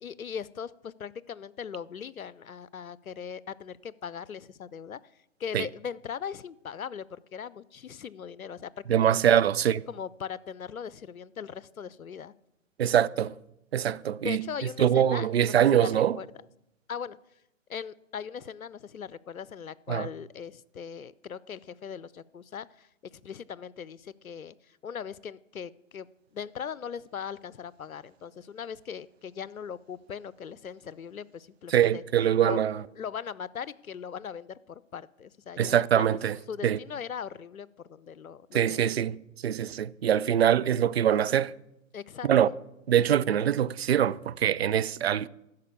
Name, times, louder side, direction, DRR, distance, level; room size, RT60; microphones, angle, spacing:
voice 1, 0.0-5.0 5.4-9.4 9.9-12.3 14.2-16.3 16.9-17.2 17.7-26.1 26.3-32.0 32.4-32.6 33.0-36.2 36.5-38.9 41.9-42.5, left 7 dB, 85° left, 0.6 m, -39 dB
voice 2, 8.9-9.8 12.8-13.4 13.7-14.4 14.8-16.2 19.9-20.1 31.7-32.8 35.6-36.8 38.5-41.5 42.2-42.5 42.9-45.3, right 10 dB, 50° right, 0.4 m, -24 dB
11.5 x 6.7 x 8.3 m
figure-of-eight pair, 135°, 41 cm